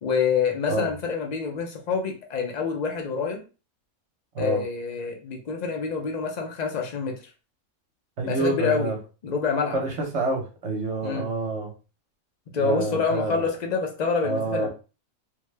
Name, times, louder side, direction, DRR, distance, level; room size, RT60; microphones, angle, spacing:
voice 1, 0.0-3.4 4.4-7.2 8.3-8.9 9.2-9.8 11.0-11.3 12.5-14.7, left 5 dB, 60° left, 3 dB, 0.4 m, -27 dB
voice 2, 8.2-9.0 9.7-11.7 12.5-13.5 14.2-14.7, right 3 dB, 55° right, 2 dB, 1.0 m, -27 dB
3.3 x 2.2 x 3.2 m, 0.33 s
omnidirectional pair, 1.5 m